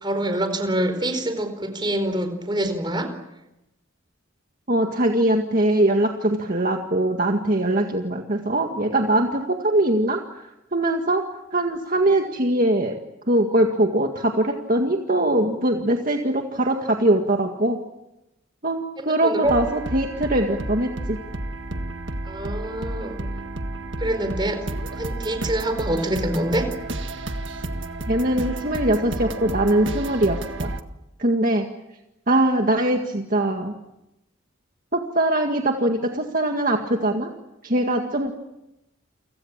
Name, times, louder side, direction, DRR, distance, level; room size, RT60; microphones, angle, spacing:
voice 1, 0.0-3.1 19.0-19.5 22.2-23.2 24.0-24.6 25.0-26.7, right 1 dB, 20° right, 8 dB, 4.5 m, -25 dB
voice 2, 4.7-11.2 11.5-13.0 13.3-17.8 18.6-21.2 28.1-30.7 31.2-31.7 32.3-33.7 34.9-37.3 37.6-38.3, right 1 dB, 45° right, 3 dB, 1.9 m, -22 dB
sound 1, 19.4-30.8, right 2 dB, 65° right, 1.7 m, -31 dB
30.0 x 25.0 x 7.4 m, 0.93 s
head